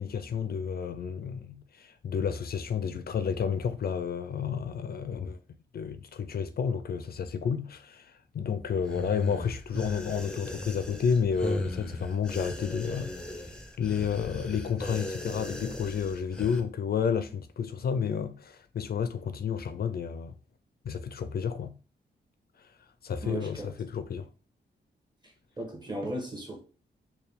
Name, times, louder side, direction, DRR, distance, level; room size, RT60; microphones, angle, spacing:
voice 1, 0.0-5.4 5.7-20.3 20.8-21.8 22.6-22.8 23.0-24.3, left 7 dB, 55° left, 0.4 m, -31 dB
sound 1, 8.8-16.6, left 1 dB, 5° left, 0.5 m, -37 dB
voice 2, 23.2-23.7 25.2-26.6, right 1 dB, 25° right, 1.2 m, -37 dB
4.4 x 2.3 x 3.4 m
wide cardioid pair, 110°, 19 cm